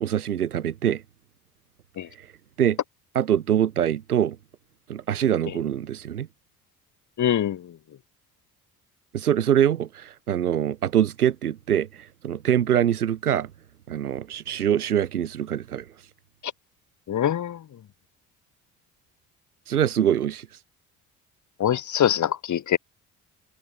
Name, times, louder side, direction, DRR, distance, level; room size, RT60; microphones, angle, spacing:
voice 1, 0.0-1.0 2.2-2.3 2.6-2.8 3.1-4.4 4.9-6.3 9.1-13.5 13.9-15.8 19.7-20.5, right 10 dB, 85° right, 1.5 m, -24 dB
voice 2, 7.2-7.6 17.1-17.6 21.6-22.8, left 10 dB, 40° left, 1.7 m, -23 dB
figure-of-eight pair, 45°, 44 cm